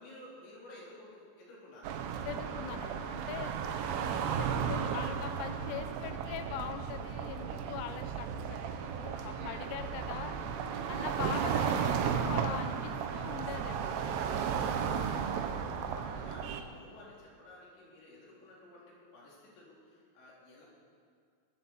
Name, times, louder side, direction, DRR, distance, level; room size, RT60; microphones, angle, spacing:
voice 1, 0.0-2.0 9.1-9.7 11.0-11.3 13.4-20.6, left 1 dB, 60° left, -5 dB, 5.8 m, -54 dB
sound 1, 1.8-16.6, right 7 dB, 80° right, 2.4 m, -34 dB
voice 2, 2.3-3.5 4.4-10.3 10.9-13.8, left 10 dB, 85° left, 9 dB, 2.4 m, -42 dB
21.0 x 7.8 x 7.3 m, 2.2 s
omnidirectional pair, 5.8 m